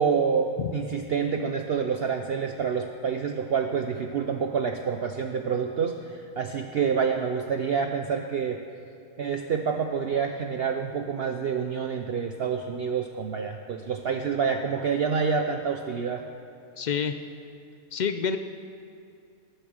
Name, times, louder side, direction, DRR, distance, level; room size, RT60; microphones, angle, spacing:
voice 1, 0.0-8.6 9.2-16.2, right 6 dB, 55° right, 5 dB, 0.7 m, -27 dB
voice 2, 16.8-17.2 17.9-18.4, left 7 dB, 90° left, 9 dB, 0.4 m, -27 dB
19.0 x 8.8 x 6.3 m, 2.5 s
omnidirectional pair, 1.5 m